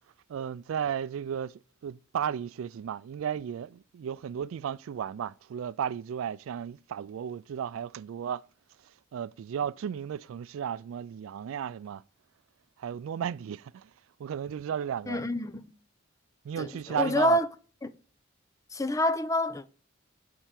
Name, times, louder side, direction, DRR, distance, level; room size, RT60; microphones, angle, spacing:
voice 1, 0.3-8.4 9.1-12.0 12.8-13.9 14.2-15.3 16.4-17.4, right 8 dB, 80° right, 0.3 m, -34 dB
voice 2, 15.1-15.7 16.6-17.5 17.8-17.9 18.7-19.7, left 1 dB, 15° left, 0.5 m, -27 dB
11.5 x 4.6 x 5.8 m
head